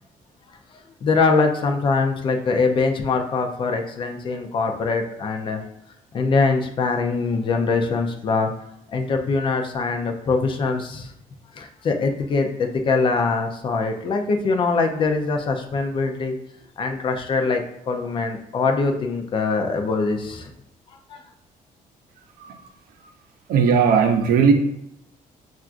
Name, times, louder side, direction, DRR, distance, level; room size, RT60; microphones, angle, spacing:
voice 1, 1.0-5.6 6.1-8.5 8.9-11.1 11.6-16.3 16.8-17.6 17.9-20.5 21.1-21.2, left 4 dB, 35° left, 4 dB, 0.4 m, -23 dB
voice 2, 23.5-24.5, right 6 dB, 75° right, 5 dB, 0.6 m, -17 dB
5.7 x 2.4 x 2.4 m, 0.79 s
cardioid pair, 175°, 15 cm